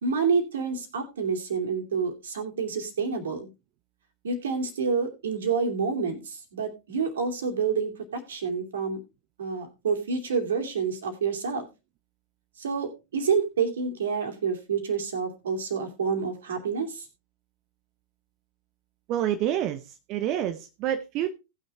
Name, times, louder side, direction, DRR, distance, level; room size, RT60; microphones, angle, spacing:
voice 1, 0.0-3.5 4.2-9.0 9.4-11.7 12.6-17.1, right 5 dB, 65° right, 4 dB, 2.7 m, -28 dB
voice 2, 19.1-21.3, right 11 dB, 40° right, 10 dB, 0.8 m, -28 dB
18.0 x 6.4 x 3.3 m, 0.27 s
figure-of-eight pair, 90°, 0 cm